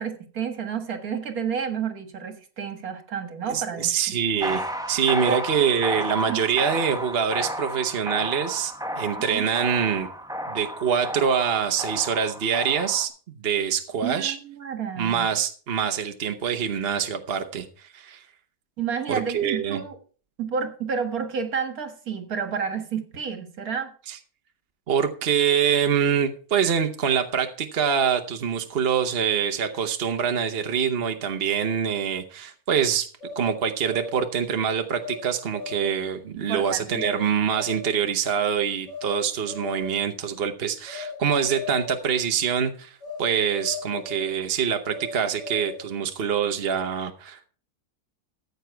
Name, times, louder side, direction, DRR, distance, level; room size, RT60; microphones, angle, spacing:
voice 1, 0.0-4.2 5.3-5.4 6.3-6.4 9.2-9.4 14.0-15.3 18.8-20.0 20.4-23.9 36.5-37.0, right 6 dB, 65° right, 6 dB, 2.1 m, -30 dB
voice 2, 3.5-10.1 10.5-13.1 13.4-14.4 15.0-18.2 19.1-19.8 24.1-24.2 24.9-33.1 33.4-47.5, right 7 dB, 45° right, 6 dB, 1.0 m, -25 dB
sound 1, 4.4-13.1, equal, 5° right, 0.7 m, -32 dB
sound 2, 33.2-34.3 34.9-35.2 35.5-36.1 36.9-37.2 37.5-38.0 38.8-39.2 39.4-40.1 40.8-41.2 41.4-42.1 43.0-43.3 43.5-44.3 44.9-45.9, left 3 dB, 35° left, 7.0 m, -37 dB
14.5 x 8.2 x 4.5 m, 0.42 s
omnidirectional pair, 1.7 m